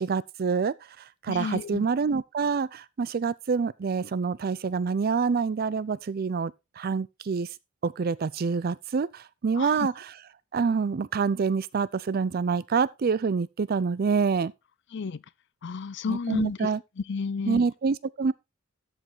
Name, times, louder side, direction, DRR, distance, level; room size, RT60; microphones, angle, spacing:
voice 1, 0.0-7.6 7.8-10.2 10.5-14.5 16.1-16.8 17.5-18.3, right 5 dB, 45° right, 0.4 m, -27 dB
voice 2, 1.3-1.9 9.6-9.7 14.9-15.2 15.6-16.6 17.1-17.6, left 5 dB, 60° left, 0.5 m, -31 dB
13.5 x 5.3 x 3.8 m
head